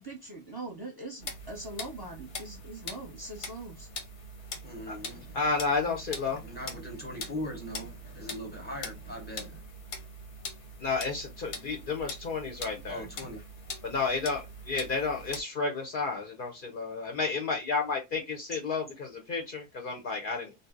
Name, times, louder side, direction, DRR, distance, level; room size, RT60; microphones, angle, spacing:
voice 1, 0.0-3.9, right 2 dB, 25° right, 0.7 m, -42 dB
sound 1, 1.2-15.4, left 2 dB, 90° left, 1.1 m, -43 dB
voice 2, 4.6-5.4 6.3-9.7 12.9-13.4, left 1 dB, 10° left, 0.8 m, -40 dB
voice 3, 5.3-6.4 10.8-13.1 13.8-20.5, left 4 dB, 60° left, 0.7 m, -31 dB
2.6 x 2.1 x 3.6 m
omnidirectional pair, 1.2 m